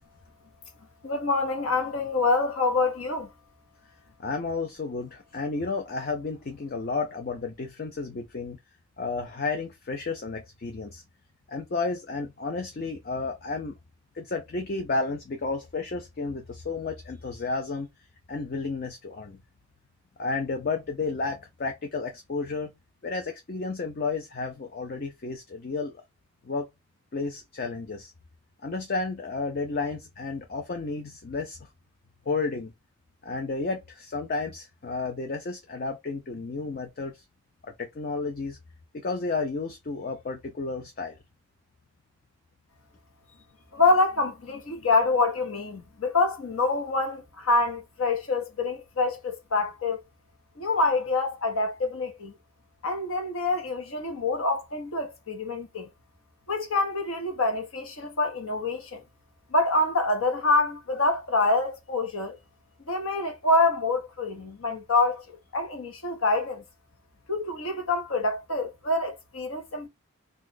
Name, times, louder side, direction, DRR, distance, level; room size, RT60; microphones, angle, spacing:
voice 1, 1.0-3.3 43.7-50.0 50.6-52.3 52.8-55.9 56.5-59.0 59.5-62.4 62.9-66.6 67.3-69.9, left 3 dB, 75° left, 1.0 m, -26 dB
voice 2, 4.2-8.6 9.0-11.0 11.5-13.7 14.1-17.9 18.3-19.4 20.2-22.7 23.0-26.0 26.4-26.7 27.1-28.1 28.6-31.6 32.3-32.7 33.2-37.2 37.8-38.6 38.9-41.2, left 3 dB, 45° left, 0.4 m, -32 dB
2.6 x 2.4 x 3.7 m
head